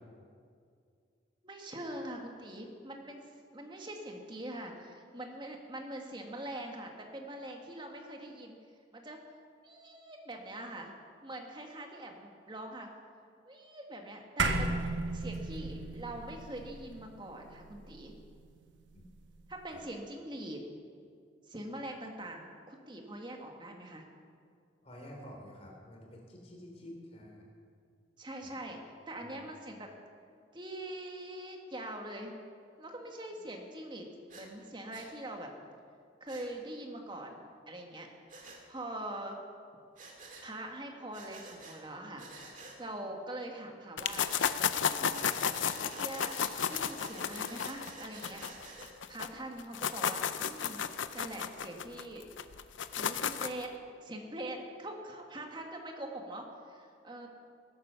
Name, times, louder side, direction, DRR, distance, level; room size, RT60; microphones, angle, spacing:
voice 1, 1.4-8.6 8.9-9.2 9.6-10.9 11.2-12.9 13.4-14.8 15.1-18.1 19.5-20.6 21.5-24.1 28.2-29.9 30.5-32.3 32.8-35.5 36.2-38.1 38.7-39.4 40.4-44.2 44.7-46.4 46.7-48.5 49.1-50.8 51.1-52.2 52.9-53.7 54.0-57.3, right 1 dB, 25° right, 2 dB, 1.6 m, -43 dB
sound 1, 14.4-19.0, right 2 dB, 80° right, 1.1 m, -35 dB
voice 2, 24.8-27.5 28.4-28.5 29.2-29.4, equal, 35° left, 0 dB, 3.2 m, -49 dB
Breathing, 34.3-34.5 34.9-35.1 36.3-36.5 38.3-38.6 40.0-40.5 41.1-41.8 42.2-42.8 44.1-44.5 45.1-48.9, right 3 dB, 45° right, 2.2 m, -50 dB
sound 2, 44.0-49.3 49.6-53.7, left 8 dB, 85° left, 0.6 m, -33 dB
17.5 x 9.2 x 6.9 m, 2.3 s
head